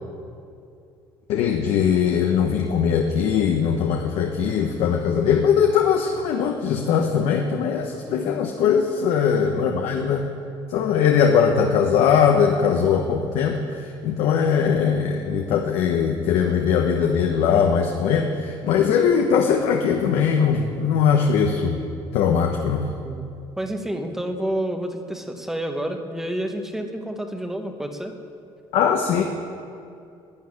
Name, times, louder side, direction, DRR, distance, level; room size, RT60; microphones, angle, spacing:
voice 1, 1.3-10.2 10.7-21.8 22.1-22.9 28.7-29.2, left 7 dB, 70° left, 3 dB, 1.0 m, -20 dB
voice 2, 8.0-8.4 20.7-20.9 23.0-23.3 23.6-28.1, right 1 dB, 5° right, 5 dB, 1.0 m, -29 dB
12.5 x 9.5 x 9.7 m, 2.5 s
cardioid pair, 170°, 10 cm